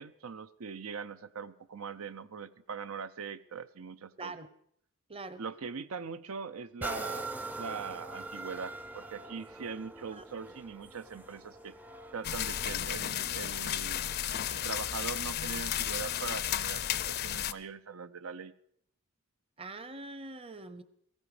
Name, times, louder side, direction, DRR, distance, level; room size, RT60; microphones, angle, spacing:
voice 1, 0.0-4.3 5.4-7.3 7.6-11.7 12.1-14.0 14.5-18.5, right 5 dB, 80° right, 13 dB, 0.6 m, -41 dB
voice 2, 5.1-5.4 10.1-10.2 19.6-20.8, right 2 dB, 25° right, 14 dB, 0.8 m, -43 dB
sound 1, 6.8-14.4 15.0-15.1, right 2 dB, 10° right, 0.5 m, -43 dB
sound 2, 12.2-17.5, left 11 dB, 45° left, 0.5 m, -33 dB
17.0 x 15.0 x 4.9 m, 0.68 s
head